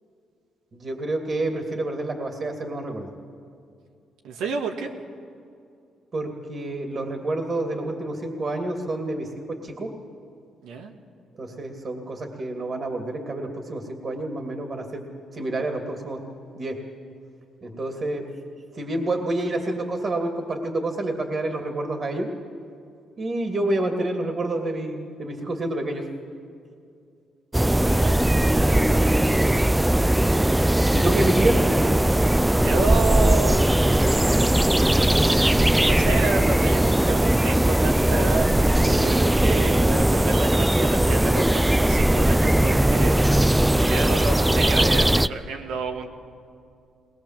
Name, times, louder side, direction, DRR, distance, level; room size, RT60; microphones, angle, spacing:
voice 1, 0.7-3.1 6.1-9.9 11.4-15.0 15.3-16.2 16.6-16.8 17.6-18.2 18.7-22.3 23.2-26.0 30.9-31.6, right 2 dB, 40° right, 3 dB, 2.5 m, -28 dB
voice 2, 4.2-4.9 10.6-10.9 27.7-29.1 32.5-33.7 35.8-43.3 43.7-46.1, right 4 dB, 85° right, 3 dB, 2.0 m, -30 dB
sound 1, 27.5-45.3, right 1 dB, 10° right, 0.5 m, -19 dB
20.5 x 20.0 x 7.6 m, 2.5 s
cardioid pair, 90°, 0 cm